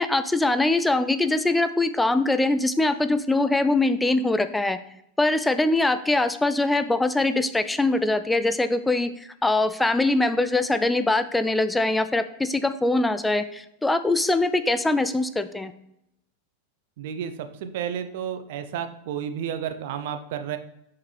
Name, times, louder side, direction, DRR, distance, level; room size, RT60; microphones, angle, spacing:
voice 1, 0.0-4.8 5.2-15.7, left 2 dB, 10° left, 11 dB, 0.4 m, -23 dB
voice 2, 17.0-20.6, right 9 dB, 65° right, 9 dB, 0.6 m, -31 dB
5.7 x 5.6 x 3.2 m, 0.80 s
hypercardioid pair, 100°, 0 cm